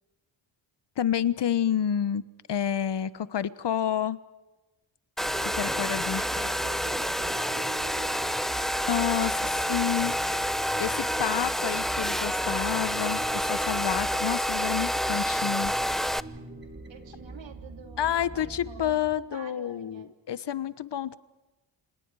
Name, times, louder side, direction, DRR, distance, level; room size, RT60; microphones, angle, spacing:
voice 1, 1.0-2.2 2.5-4.2 5.5-6.5 8.9-9.3 9.7-10.1 10.8-15.7 18.0-21.2, left 9 dB, 60° left, 15 dB, 1.2 m, -29 dB
Domestic sounds home sounds, 5.2-16.2, equal, ahead, 0.7 m, -28 dB
sound 1, 5.2-19.1, right 2 dB, 25° right, 4.2 m, -43 dB
voice 2, 6.0-9.5 9.9-10.4 14.7-14.9 16.9-20.1, right 6 dB, 70° right, 6 dB, 3.4 m, -48 dB
28.5 x 27.5 x 4.9 m, 1.1 s
cardioid pair, 90°, 47 cm